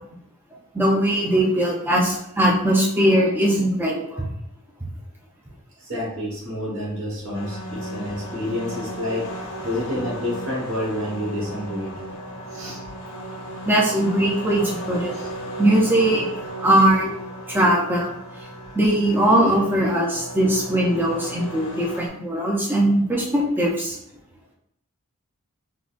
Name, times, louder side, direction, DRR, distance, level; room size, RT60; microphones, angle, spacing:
voice 1, 0.7-4.3 13.7-15.1 15.6-16.3 16.6-17.1 17.5-18.2 18.7-24.0, right 1 dB, 10° right, -3 dB, 0.5 m, -20 dB
voice 2, 5.8-11.9 12.5-12.8 15.1-15.3, left 1 dB, 60° right, -5 dB, 1.3 m, -29 dB
sound 1, 7.3-22.1, right 1 dB, 75° left, 0.7 m, -35 dB
3.8 x 2.2 x 2.4 m, 0.75 s
head